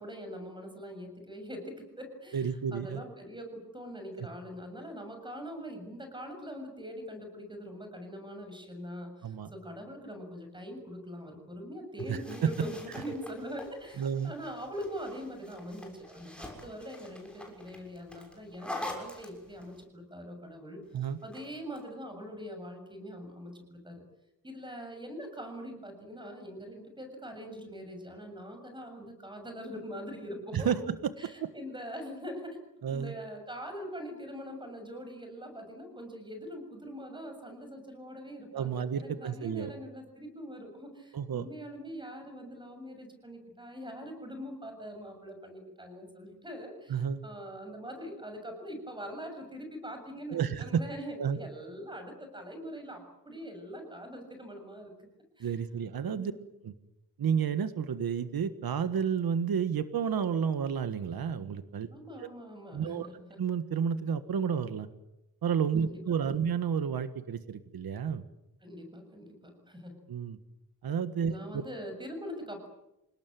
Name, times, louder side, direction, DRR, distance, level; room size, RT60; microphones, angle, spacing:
voice 1, 0.0-24.0 24.4-30.7 31.2-32.6 32.9-55.1 55.4-55.6 56.2-56.5 61.9-63.4 65.8-66.0 68.6-69.9 71.3-72.7, equal, 15° right, 5 dB, 7.0 m, -43 dB
voice 2, 2.3-3.0 4.2-4.3 9.2-9.5 12.1-12.5 14.0-14.3 20.9-21.2 30.5-30.9 31.4-31.5 32.8-33.1 38.5-39.7 41.1-41.4 46.9-47.2 50.3-50.8 51.2-51.4 55.4-56.3 56.6-56.7 57.2-61.9 62.2-62.3 62.7-63.1 63.4-64.9 65.4-68.2 70.1-70.4 70.8-71.6, right 7 dB, 85° right, 11 dB, 1.6 m, -31 dB
sound 1, 12.0-19.8 21.0-21.8, left 1 dB, 5° left, 6.6 m, -45 dB
29.0 x 18.5 x 9.4 m, 0.89 s
wide cardioid pair, 165°, 35 cm